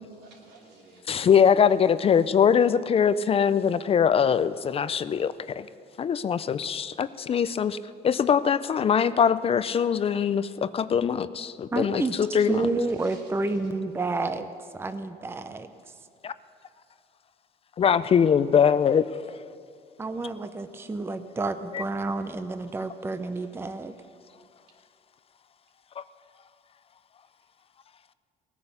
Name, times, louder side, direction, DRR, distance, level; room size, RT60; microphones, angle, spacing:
voice 1, 0.0-1.2 12.1-13.6, right 3 dB, 85° right, -1 dB, 3.0 m, -54 dB
voice 2, 1.1-5.7 6.0-7.8 8.0-12.7 16.2-16.3 17.8-19.4 21.7-21.8 26.0-26.1, left 7 dB, 35° left, 15 dB, 0.4 m, -22 dB
voice 3, 11.7-12.2 12.5-15.7 20.0-23.9, right 3 dB, 15° right, 10 dB, 0.6 m, -30 dB
18.0 x 9.6 x 6.8 m, 2.3 s
cardioid pair, 110°, 17 cm